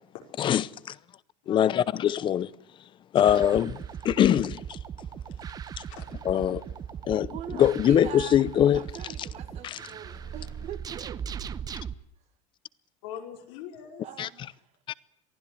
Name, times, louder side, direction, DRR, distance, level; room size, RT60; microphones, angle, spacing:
voice 1, 0.4-0.9 1.5-2.5 3.1-4.8 6.2-6.6 7.1-7.3 7.6-8.8 9.6-9.8 14.2-14.3 14.9-15.0, left 10 dB, 30° left, 0.8 m, -23 dB
voice 2, 1.4-1.8 5.2-6.1 13.0-14.1, left 9 dB, 75° left, 5.1 m, -43 dB
sound 1, 3.2-11.9, right 8 dB, 25° right, 0.9 m, -38 dB
voice 3, 7.1-11.2 14.0-14.6, right 11 dB, 45° right, 1.8 m, -42 dB
23.5 x 15.5 x 9.7 m
cardioid pair, 150°, 16 cm